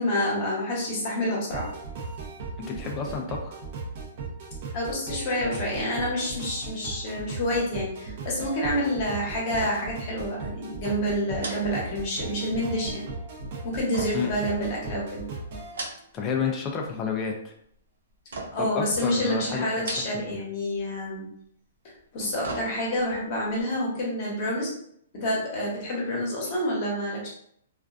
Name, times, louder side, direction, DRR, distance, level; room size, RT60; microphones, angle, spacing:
voice 1, 0.0-1.7 4.7-13.0 13.6-15.2 18.5-21.3 22.1-24.7 25.1-27.3, left 1 dB, 35° left, -4 dB, 0.9 m, -28 dB
sound 1, 1.5-15.7, right 3 dB, 45° right, 0.6 m, -37 dB
voice 2, 2.7-3.6 14.1-14.3 16.1-17.5 18.6-19.9 20.1-20.3 26.1-26.2, left 5 dB, 20° left, 1 dB, 0.3 m, -30 dB
sound 2, 9.5-10.1 10.3-10.5 11.4-12.5 13.9-15.0 15.6-16.3 16.7-17.2 18.3-18.8 19.7-20.4 20.7-20.9 22.0-23.1 23.5-23.6, right 2 dB, 90° right, 0.5 m, -39 dB
2.4 x 2.2 x 2.4 m, 0.69 s
hypercardioid pair, 160°, 0 cm